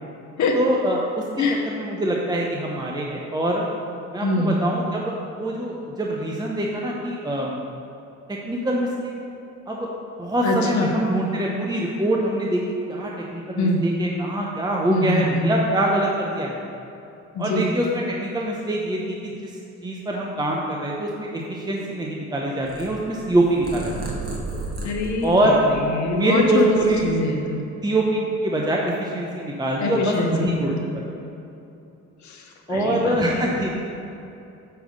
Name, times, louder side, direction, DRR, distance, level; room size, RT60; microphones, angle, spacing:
voice 1, 0.5-1.2 1.7-3.7 4.1-7.6 8.3-9.1 9.7-9.9 10.2-16.6 17.4-19.5 19.8-24.0 25.2-25.6 26.1-27.1 27.8-31.2 32.7-33.9, right 1 dB, 15° right, -2 dB, 0.8 m, -24 dB
voice 2, 4.2-4.6 10.4-11.0 13.6-13.9 14.9-15.5 17.3-17.7 24.8-27.6 29.8-30.8 32.2-33.4, left 2 dB, 70° left, 1 dB, 1.0 m, -24 dB
Purr, 22.6-26.2 26.6-27.7, right 2 dB, 30° right, 1.5 m, -34 dB
9.0 x 3.4 x 6.6 m, 2.8 s
cardioid pair, 90°, 30 cm